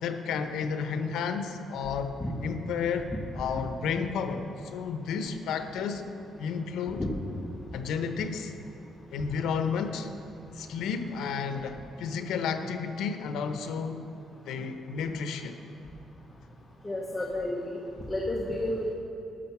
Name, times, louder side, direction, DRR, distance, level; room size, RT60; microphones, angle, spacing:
voice 1, 0.0-2.1 2.4-6.1 6.4-7.1 7.7-8.5 9.1-10.1 10.5-14.0 14.4-15.6, left 6 dB, 80° left, 8 dB, 0.7 m, -32 dB
voice 2, 7.0-7.5 16.8-17.8 18.1-18.9, left 1 dB, 15° left, -2 dB, 0.8 m, -31 dB
11.0 x 6.6 x 5.9 m, 2.9 s
cardioid pair, 165°, 0 cm